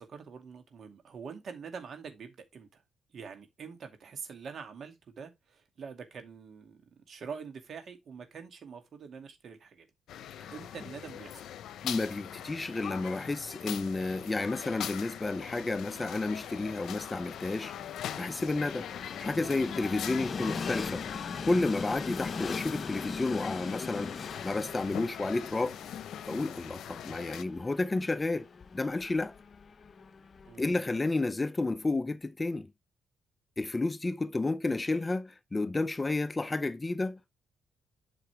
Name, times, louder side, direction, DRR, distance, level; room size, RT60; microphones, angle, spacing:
voice 1, 0.0-2.8 3.1-6.8 7.1-9.9 10.5-11.4 30.4-30.6, right 6 dB, 55° right, 2.4 m, -45 dB
sound 1, 10.1-27.4, left 10 dB, 75° left, 0.8 m, -42 dB
voice 2, 11.8-17.7 18.2-24.2 24.4-25.8 26.3-28.5 28.7-29.4 30.6-32.7 33.6-37.2, left 2 dB, 20° left, 0.5 m, -31 dB
Train, 14.7-30.7, left 5 dB, 40° left, 0.9 m, -41 dB
8.2 x 5.9 x 3.3 m
cardioid pair, 90°, 0 cm